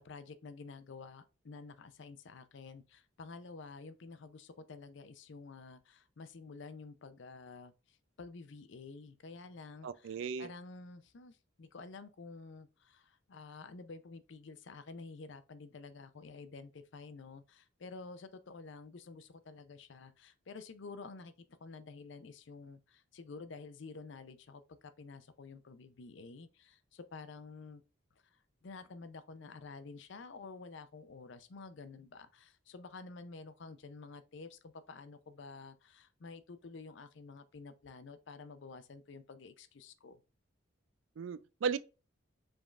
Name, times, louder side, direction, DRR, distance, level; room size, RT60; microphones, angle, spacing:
voice 1, 0.0-27.8 28.2-40.2, left 4 dB, 65° left, 0.5 m, -50 dB
voice 2, 9.8-10.5 41.2-41.8, right 6 dB, 70° right, 0.3 m, -36 dB
5.1 x 3.5 x 2.4 m
head